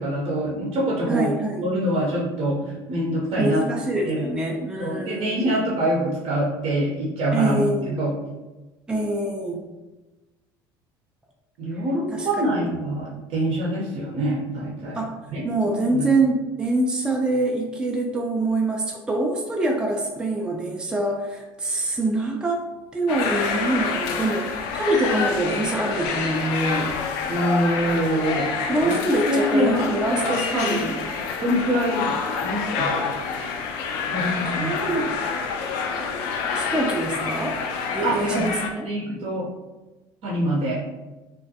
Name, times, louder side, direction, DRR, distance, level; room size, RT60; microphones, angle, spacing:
voice 1, 0.0-1.3 1.6-2.6 2.9-3.6 4.0-4.2 4.8-8.2 11.6-15.0 15.3-16.1 27.3-28.5 28.8-29.0 29.3-30.9 31.4-33.1 34.0-34.7 38.0-38.6 38.8-39.5 40.2-40.8, right 1 dB, 55° right, -5 dB, 0.7 m, -25 dB
voice 2, 1.1-1.7 3.3-5.5 7.3-7.9 8.9-9.6 12.1-12.3 14.9-15.1 15.4-22.6 22.9-27.0 28.7-31.0 34.4-35.1 36.5-37.6 37.9-38.9, right 2 dB, 5° right, 0 dB, 0.3 m, -25 dB
sound 1, 23.1-38.7, left 5 dB, 70° left, 0.4 m, -27 dB
2.4 x 2.1 x 2.7 m, 1.1 s
hypercardioid pair, 75°, 12 cm